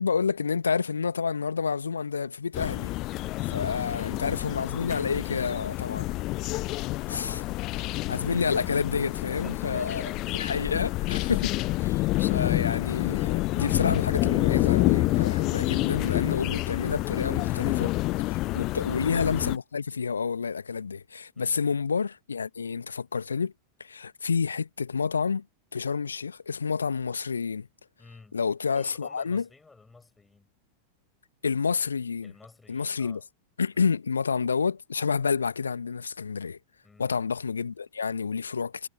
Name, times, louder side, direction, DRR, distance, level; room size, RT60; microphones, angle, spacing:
voice 1, 0.0-2.9 3.5-6.1 7.1-7.4 8.1-10.1 10.4-11.5 11.8-17.9 18.3-23.5 23.8-25.4 25.7-27.7 28.3-29.4 31.4-32.3 32.7-33.2 33.6-36.6 37.0-38.9, left 5 dB, 75° left, 1.9 m, -29 dB
sound 1, 2.5-19.6, left 20 dB, 40° left, 0.5 m, -28 dB
voice 2, 3.1-3.9 9.2-10.8 11.2-11.6 18.3-18.7 21.3-21.7 28.0-28.4 28.7-30.5 32.2-33.2 33.7-33.9 36.8-37.1, left 3 dB, 10° left, 6.4 m, -52 dB
figure-of-eight pair, 90°, 0 cm